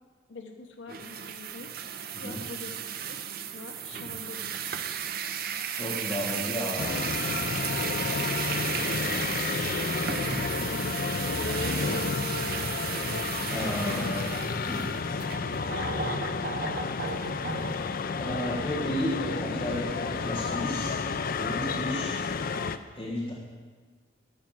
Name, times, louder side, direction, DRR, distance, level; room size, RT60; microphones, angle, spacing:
voice 1, 0.3-1.7 2.2-2.8 3.0-3.2 3.5-4.5 7.7-9.4 11.6-12.2 13.9-14.2, left 3 dB, 70° left, 4 dB, 1.0 m, -45 dB
sound 1, 0.9-17.9, right 7 dB, 50° right, 0.6 m, -34 dB
voice 2, 5.8-7.0 8.9-9.3 10.2-10.8 11.8-12.1 13.5-14.3 14.7-14.9 18.2-21.0 21.4-22.2 22.9-23.3, equal, 30° left, -5 dB, 1.5 m, -33 dB
sound 2, 6.8-22.8, left 4 dB, 45° left, 0.4 m, -31 dB
12.0 x 5.8 x 7.6 m, 1.5 s
head